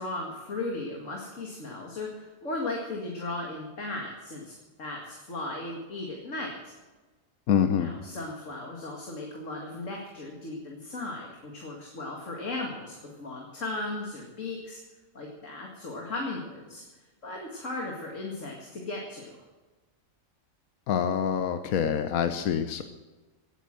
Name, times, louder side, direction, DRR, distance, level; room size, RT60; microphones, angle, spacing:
voice 1, 0.0-6.7 7.8-14.8 15.1-16.8 17.2-19.4, left 2 dB, 60° left, 0 dB, 2.5 m, -36 dB
voice 2, 7.5-7.9 20.9-22.8, left 8 dB, 80° left, 8 dB, 1.3 m, -26 dB
17.5 x 9.1 x 7.6 m, 1.2 s
omnidirectional pair, 1.5 m